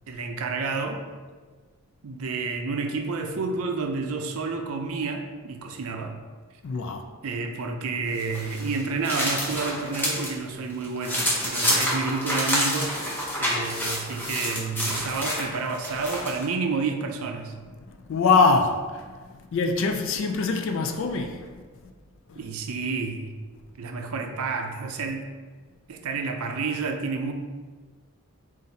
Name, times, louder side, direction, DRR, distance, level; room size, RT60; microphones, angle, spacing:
voice 1, 0.1-1.0 2.0-6.2 7.2-13.1 13.4-17.5 22.4-23.3 23.8-25.3 25.9-27.3, right 4 dB, 70° right, 5 dB, 0.5 m, -30 dB
voice 2, 6.6-7.0 18.1-19.1 19.5-21.5 22.3-22.4, left 4 dB, 55° left, 4 dB, 0.3 m, -23 dB
sound 1, 8.2-10.3 10.7-16.5, equal, 10° left, 0.6 m, -28 dB
4.0 x 2.5 x 3.9 m, 1.5 s
head